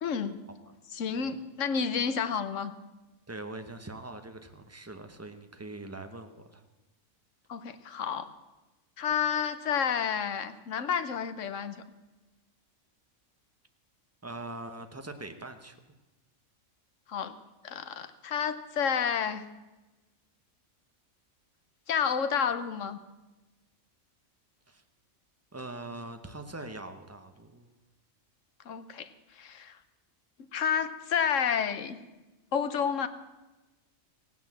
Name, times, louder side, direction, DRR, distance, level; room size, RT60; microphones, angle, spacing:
voice 1, 0.0-0.4 0.9-2.7 7.5-8.3 9.0-11.8 17.1-17.4 17.6-19.4 21.9-23.0 28.7-29.1 29.4-29.8 30.5-32.0 32.5-33.1, left 7 dB, 65° left, 12 dB, 1.2 m, -30 dB
voice 2, 3.3-6.6 14.2-15.8 24.7-24.8 25.5-27.7, right 2 dB, 15° right, 7 dB, 0.9 m, -42 dB
16.5 x 9.5 x 7.5 m, 1.1 s
omnidirectional pair, 1.4 m